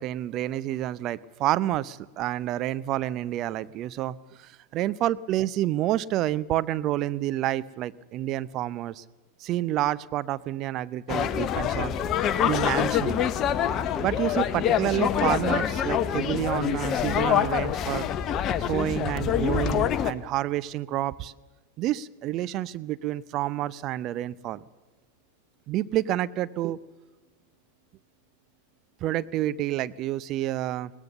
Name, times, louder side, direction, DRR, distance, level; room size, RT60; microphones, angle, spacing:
voice 1, 0.0-9.0 9.4-12.0 12.4-13.2 14.0-18.1 18.6-21.3 21.8-24.6 25.7-26.8 29.0-30.9, right 14 dB, 35° right, 16 dB, 0.6 m, -29 dB
sound 1, 11.1-20.1, left 9 dB, 30° left, 0.9 m, -25 dB
21.0 x 18.0 x 6.8 m, 1.2 s
figure-of-eight pair, 90°, 0 cm